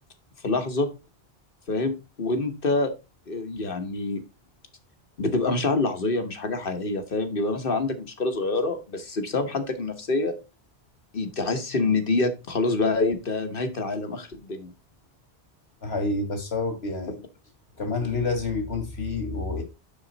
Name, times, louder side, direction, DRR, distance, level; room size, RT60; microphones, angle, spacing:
voice 1, 0.4-0.9 1.7-2.9 3.3-4.2 5.2-10.3 11.1-14.7, left 3 dB, 60° left, 1.4 m, -26 dB
voice 2, 15.8-17.2 17.8-19.6, left 3 dB, 80° left, 2.1 m, -28 dB
7.3 x 6.4 x 4.0 m
omnidirectional pair, 1.0 m